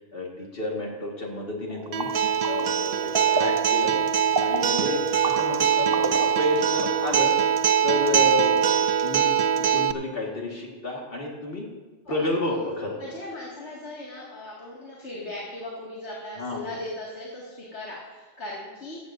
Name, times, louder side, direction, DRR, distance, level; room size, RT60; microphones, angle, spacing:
voice 1, 0.1-2.1 2.4-4.0 4.4-7.3 7.8-9.3 9.6-11.7 12.1-13.0 16.4-16.6, left 2 dB, 60° left, -1 dB, 2.1 m, -30 dB
sound 1, 1.7-6.7, right 2 dB, 25° right, 0.7 m, -34 dB
Acoustic guitar, 1.9-9.9, right 8 dB, 60° right, 0.4 m, -23 dB
voice 2, 2.6-3.2 12.1-12.6 13.0-19.0, left 1 dB, 90° left, -5 dB, 2.4 m, -38 dB
15.5 x 15.0 x 2.6 m, 1.3 s
omnidirectional pair, 1.1 m